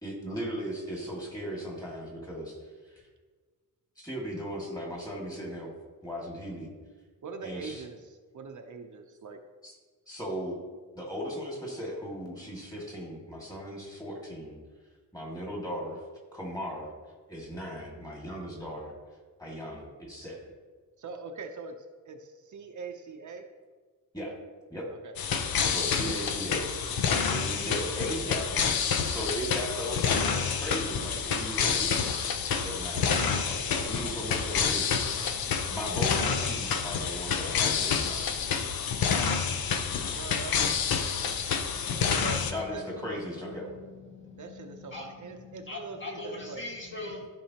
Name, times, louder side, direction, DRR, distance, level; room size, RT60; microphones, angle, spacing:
voice 1, 0.0-2.6 2.9-3.0 4.0-5.7 6.0-6.7 7.4-7.8 9.6-9.7 10.1-10.6 10.9-14.6 15.1-16.0 16.3-16.9 17.3-18.9 19.4-20.4 24.1-24.3 24.7-24.9 25.7-27.0 27.3-28.8 29.0-32.1 32.6-35.1 35.7-38.3 42.5-43.8, equal, 10° left, -3 dB, 2.0 m, -37 dB
voice 2, 7.2-9.4 21.0-21.7 22.1-23.4 25.0-25.2 40.1-41.3 42.2-42.4 42.7-42.8 44.4-46.6, right 4 dB, 60° right, 4 dB, 0.7 m, -42 dB
sound 1, 25.2-42.5, left 6 dB, 85° left, 0.7 m, -28 dB
voice 3, 41.9-47.3, left 2 dB, 35° left, -2 dB, 1.7 m, -42 dB
13.5 x 5.4 x 2.9 m, 1.4 s
wide cardioid pair, 160°, 34 cm